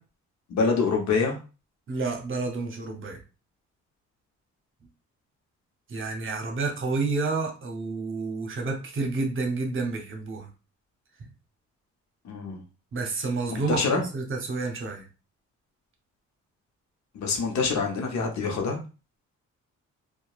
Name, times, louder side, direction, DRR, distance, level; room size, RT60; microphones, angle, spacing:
voice 1, 0.5-1.4 12.2-12.6 13.7-14.0 17.1-18.8, left 4 dB, 65° left, 2 dB, 0.8 m, -25 dB
voice 2, 1.9-3.2 5.9-10.5 12.9-15.0, right 3 dB, 40° right, 2 dB, 0.8 m, -30 dB
2.8 x 2.3 x 2.3 m, 0.33 s
cardioid pair, 90°, 30 cm